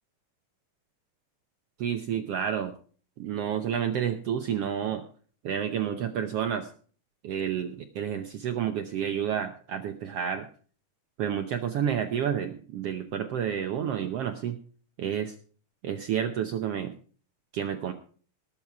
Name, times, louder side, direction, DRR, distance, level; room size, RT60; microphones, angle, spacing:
voice 1, 1.8-2.7 3.2-5.0 5.4-6.7 7.2-10.5 11.2-14.6 15.0-15.3 15.8-17.0 17.5-17.9, right 9 dB, 80° right, 7 dB, 1.3 m, -30 dB
19.0 x 7.4 x 4.7 m, 0.43 s
omnidirectional pair, 3.9 m